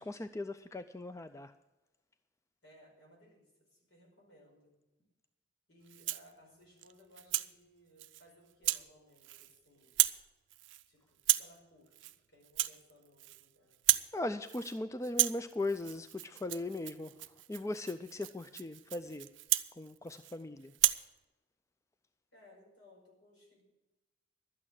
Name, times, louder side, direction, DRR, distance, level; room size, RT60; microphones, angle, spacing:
voice 1, 0.0-1.5 14.1-19.3 19.7-20.7, left 2 dB, 15° left, 10 dB, 0.4 m, -39 dB
voice 2, 2.6-4.7 5.7-10.0 10.9-14.1 22.3-23.6, left 1 dB, 70° left, -1 dB, 5.3 m, -62 dB
Rattle (instrument), 5.9-6.3 6.8-7.5 8.0-8.2 8.6-8.9 9.2-9.6 9.8-10.2 10.5-10.8 11.2-11.6 11.9-12.2 12.4-13.5 13.7-14.1 14.4-14.8 15.0-20.4 20.7-21.1, right 16 dB, 65° right, 0.5 m, -33 dB
12.0 x 8.6 x 7.6 m, 1.0 s
head